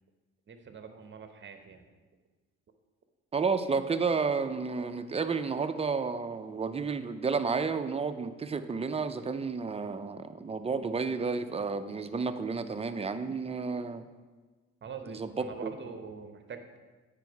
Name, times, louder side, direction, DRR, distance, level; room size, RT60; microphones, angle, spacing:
voice 1, 0.5-1.9 14.8-16.8, right 6 dB, 40° right, 7 dB, 0.9 m, -44 dB
voice 2, 3.3-14.0 15.1-15.7, right 4 dB, 20° right, 9 dB, 0.5 m, -31 dB
8.9 x 5.3 x 4.7 m, 1.3 s
cardioid pair, 90°, 30 cm